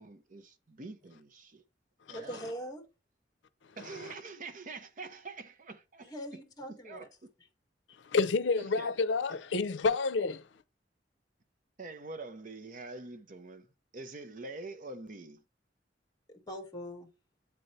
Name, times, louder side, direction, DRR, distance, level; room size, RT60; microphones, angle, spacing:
voice 1, 0.0-1.6 2.1-2.4 3.8-6.1 6.7-7.1 8.6-8.9 9.3-9.4 11.8-13.7 13.9-15.4, right 3 dB, 45° right, 0.8 m, -45 dB
voice 2, 2.1-2.8 6.0-7.0 16.3-17.1, equal, 25° left, 1.8 m, -42 dB
voice 3, 8.1-10.4, left 4 dB, 90° left, 0.5 m, -29 dB
8.3 x 4.0 x 3.2 m
head